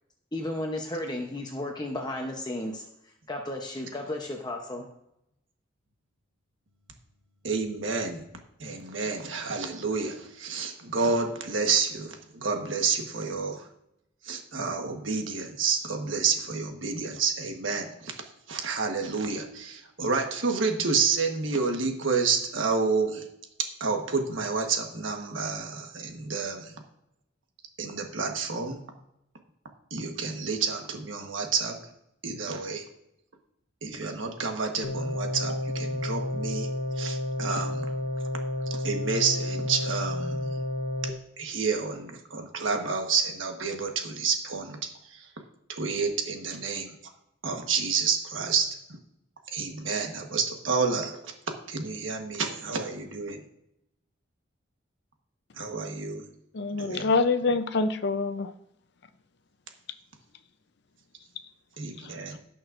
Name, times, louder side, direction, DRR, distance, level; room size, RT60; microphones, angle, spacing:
voice 1, 0.3-2.8 3.3-4.8, left 1 dB, 20° left, 0.8 m, -33 dB
voice 2, 7.4-8.3 8.6-13.7 14.2-18.2 18.5-23.2 23.8-26.7 27.8-28.8 29.9-31.8 32.2-32.8 33.8-36.7 37.0-37.9 38.7-40.6 41.4-44.8 45.1-45.3 45.7-46.9 47.4-48.7 49.5-51.3 51.7-53.4 55.6-56.2 56.8-57.1 61.8-62.4, right 5 dB, 80° right, 1.3 m, -29 dB
sound 1, 34.8-41.1, left 1 dB, 85° left, 1.2 m, -31 dB
voice 3, 56.5-58.5 62.0-62.1, left 3 dB, 60° left, 0.6 m, -26 dB
17.5 x 6.2 x 2.6 m
head